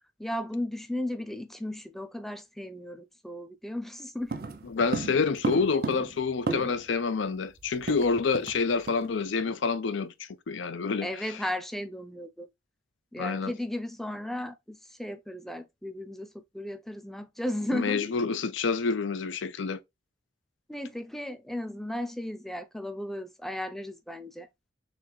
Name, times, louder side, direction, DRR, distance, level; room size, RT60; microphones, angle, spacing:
voice 1, 0.2-4.4 11.0-12.5 13.1-18.1 20.7-24.5, left 1 dB, ahead, 0.4 m, -35 dB
sound 1, 4.3-7.0 7.2-7.3 7.6-8.6 8.9-9.1 9.5-9.7, right 3 dB, 50° right, 0.5 m, -34 dB
voice 2, 4.7-11.4 13.2-13.5 17.7-19.8, left 4 dB, 80° left, 0.5 m, -28 dB
4.1 x 3.2 x 3.0 m
head